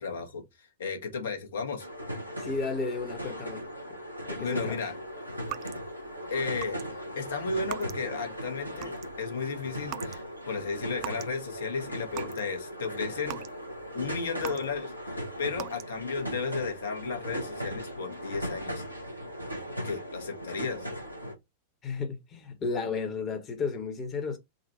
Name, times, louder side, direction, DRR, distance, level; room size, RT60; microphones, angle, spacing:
voice 1, 0.0-1.9 4.4-4.9 6.3-6.8 7.1-13.4 13.9-18.8 19.8-20.9, left 4 dB, 60° left, 1.2 m, -34 dB
sound 1, 1.8-21.3, equal, 90° right, 1.1 m, -38 dB
voice 2, 2.4-3.6 4.3-4.9 21.8-24.4, left 4 dB, 30° left, 1.2 m, -33 dB
sound 2, 5.4-6.1 6.6-6.8 7.1-8.2 8.6-9.2 9.8-10.2 10.5-11.4 11.8-12.5 12.9-15.0 15.5-16.1, right 15 dB, 40° right, 0.3 m, -42 dB
4.0 x 2.5 x 4.3 m
figure-of-eight pair, 90°, 0 cm